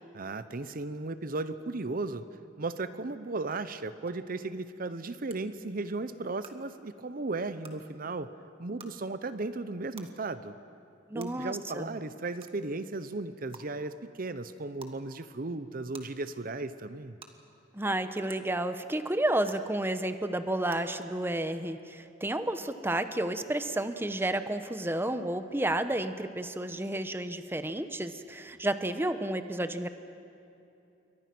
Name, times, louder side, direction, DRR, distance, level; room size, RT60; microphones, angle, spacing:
voice 1, 0.1-2.2 2.6-8.3 8.6-10.6 11.1-17.2, right 3 dB, 50° right, 12 dB, 0.8 m, -35 dB
sound 1, 4.1-4.2 5.3-5.4 6.4-6.5 7.6-7.7 8.8-8.9 10.0-10.1 11.2-11.3 12.4-12.5 13.5-13.6 14.8-14.9 15.9-16.0 17.2-17.3 18.3-18.4 19.5-19.6 20.7-20.8, right 5 dB, 30° right, 1.7 m, -47 dB
voice 2, 11.1-12.0 17.7-29.9, right 1 dB, 15° right, 10 dB, 0.9 m, -31 dB
28.5 x 23.5 x 6.1 m, 2.8 s
head